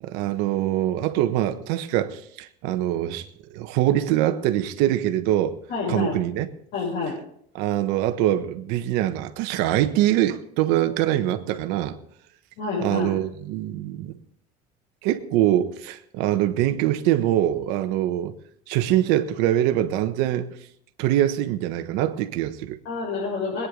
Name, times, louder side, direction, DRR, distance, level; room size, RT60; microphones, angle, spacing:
voice 1, 0.0-3.2 3.5-5.5 5.9-6.5 7.5-12.0 12.8-14.1 15.0-18.3 18.7-20.5 21.0-22.8, right 13 dB, 75° right, 1.2 m, -23 dB
voice 2, 5.7-6.2 6.7-7.2 12.6-13.2 22.8-23.7, left 4 dB, 75° left, 6.2 m, -28 dB
21.0 x 9.9 x 3.9 m
supercardioid pair, 85°, 18 cm